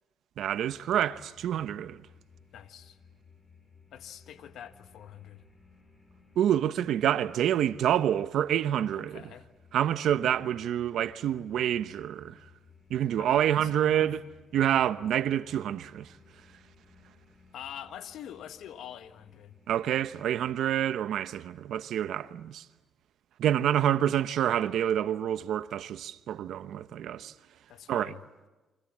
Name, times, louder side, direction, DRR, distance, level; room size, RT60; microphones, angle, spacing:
voice 1, 0.4-2.0 6.4-9.2 9.7-12.4 12.9-14.2 14.5-16.1 19.7-22.6 23.4-27.3 27.9-28.1, right 10 dB, 75° right, 0.9 m, -27 dB
sound 1, 0.6-20.6, left 5 dB, 20° left, 6.0 m, -59 dB
voice 2, 2.5-3.0 3.9-5.4 8.9-9.5 13.2-14.1 17.5-19.6 27.7-28.2, left 10 dB, 75° left, 1.5 m, -45 dB
29.0 x 25.0 x 7.4 m
cardioid pair, 90°, 0 cm